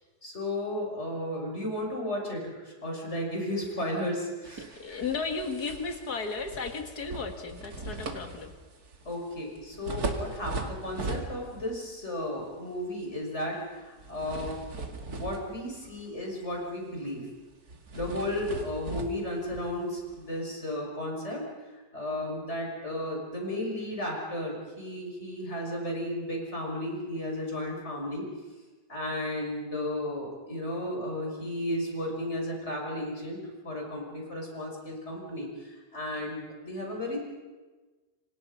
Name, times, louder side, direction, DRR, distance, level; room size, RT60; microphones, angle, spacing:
voice 1, 0.2-5.0 9.0-14.6 15.1-17.3 17.9-21.4 21.9-28.3 28.9-37.2, left 1 dB, 45° left, 0 dB, 6.5 m, -34 dB
sound 1, 4.4-11.8 12.2-12.4 14.0-16.2 16.5-16.8 17.0-17.2 17.7-20.3, right 3 dB, 70° right, 2.7 m, -39 dB
voice 2, 4.8-8.5, left 4 dB, 75° left, 6 dB, 2.5 m, -34 dB
28.5 x 25.0 x 5.6 m, 1.3 s
omnidirectional pair, 1.7 m